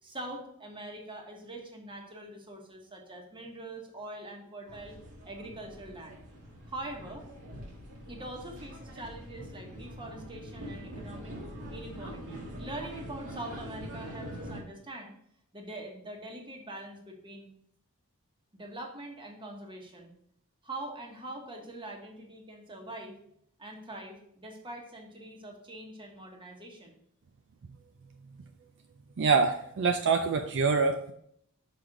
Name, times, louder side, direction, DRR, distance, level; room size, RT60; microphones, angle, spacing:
voice 1, 0.0-5.0 5.2-6.2 6.7-7.3 8.1-11.3 11.7-15.1 15.5-17.5 18.5-20.1 20.6-23.2 23.6-27.0, right 1 dB, 20° right, 1 dB, 1.3 m, -43 dB
sound 1, 4.7-14.6, equal, 90° right, 1.8 m, -44 dB
voice 2, 29.2-31.1, right 5 dB, 55° right, 5 dB, 0.4 m, -25 dB
6.2 x 5.2 x 3.8 m, 0.70 s
head